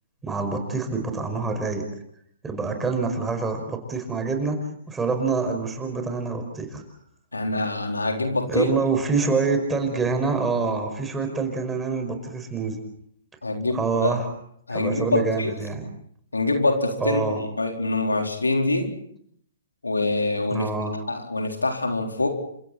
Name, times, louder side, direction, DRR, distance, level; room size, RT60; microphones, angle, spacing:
voice 1, 0.2-1.8 2.4-4.6 4.9-6.8 8.5-12.8 13.7-14.2 14.7-15.9 17.0-17.4 20.5-20.9, right 4 dB, 10° right, 5 dB, 5.3 m, -26 dB
voice 2, 7.3-8.7 13.4-14.1 14.7-15.5 16.3-17.2 17.6-18.9 19.8-20.7 21.1-22.3, left 2 dB, 90° left, 3 dB, 4.1 m, -24 dB
30.0 x 27.0 x 4.3 m, 0.67 s
figure-of-eight pair, 125°, 0 cm